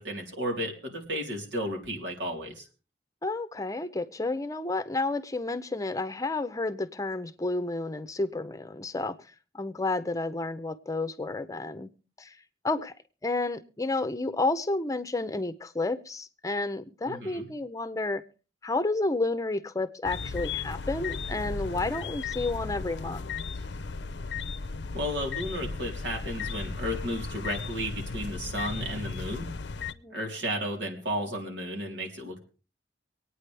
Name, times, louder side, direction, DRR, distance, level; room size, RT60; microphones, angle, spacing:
voice 1, 0.0-2.7 17.0-17.5 24.9-29.5 30.1-32.4, equal, 90° right, 1 dB, 3.7 m, -33 dB
voice 2, 3.2-9.2 9.5-11.9 12.2-12.3 12.6-12.9 13.2-18.2 18.6-23.3 29.9-30.2, left 2 dB, 20° left, 11 dB, 0.7 m, -31 dB
sound 1, 20.0-29.9, left 4 dB, 70° left, 0.6 m, -35 dB
24.5 x 9.2 x 3.4 m, 0.36 s
head